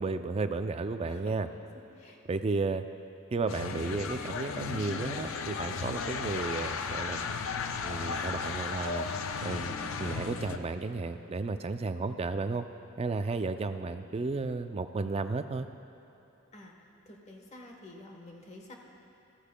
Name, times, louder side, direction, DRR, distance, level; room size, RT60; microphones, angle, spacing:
voice 1, 0.0-1.5 2.3-2.8 3.3-7.3 7.8-9.1 9.4-12.7 13.0-15.7, right 3 dB, 30° right, 9 dB, 0.4 m, -33 dB
voice 2, 1.1-1.7 1.9-2.2 16.5-16.7 17.0-18.8, left 1 dB, 35° left, 1 dB, 1.1 m, -49 dB
sound 1, 3.5-10.6, left 5 dB, 65° left, 0.5 m, -35 dB
15.0 x 14.0 x 2.2 m, 3.0 s
head